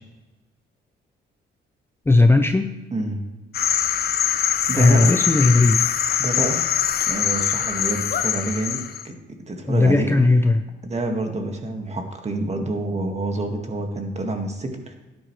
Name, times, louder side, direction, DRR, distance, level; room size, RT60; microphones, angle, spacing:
voice 1, 2.1-2.7 4.7-5.8 9.7-10.7, left 2 dB, 10° left, 7 dB, 0.6 m, -17 dB
voice 2, 2.9-3.2 4.7-5.1 6.2-6.6 7.1-9.1 9.5-10.1 10.8-14.9, right 2 dB, 35° right, 4 dB, 2.0 m, -27 dB
sound 1, 3.5-9.1, left 8 dB, 55° left, 0.7 m, -23 dB
12.0 x 10.5 x 3.3 m, 1.1 s
cardioid pair, 90°, 20 cm